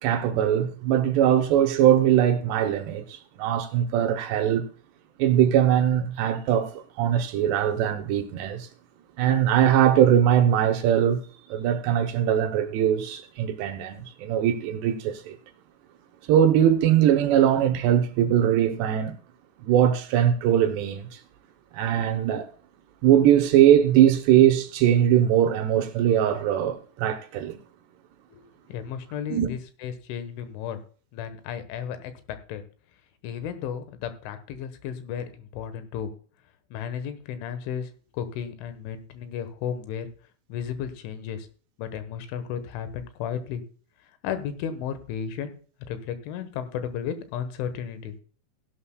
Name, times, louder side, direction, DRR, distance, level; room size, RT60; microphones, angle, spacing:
voice 1, 0.0-4.7 5.2-8.7 9.2-11.2 11.5-15.4 16.3-19.2 19.6-21.2 21.7-22.5 23.0-27.6 29.3-29.5, right 10 dB, 75° right, 2.7 m, -21 dB
voice 2, 28.7-30.8 31.1-32.6 33.2-36.1 36.7-40.1 40.5-41.5 41.8-43.6 44.2-45.5 45.9-48.2, left 8 dB, 85° left, 3.6 m, -34 dB
16.0 x 11.5 x 2.2 m
omnidirectional pair, 5.4 m